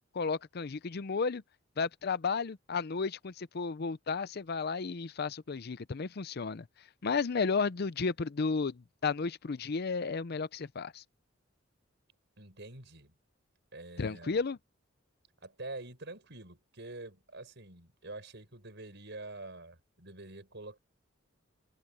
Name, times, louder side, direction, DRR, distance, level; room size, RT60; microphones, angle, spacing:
voice 1, 0.1-1.4 1.8-6.7 7.0-11.0 14.0-14.6, left 4 dB, 50° left, 0.6 m, -33 dB
voice 2, 12.4-13.1 13.7-14.4 15.4-20.8, right 2 dB, 60° right, 6.3 m, -46 dB
open air
head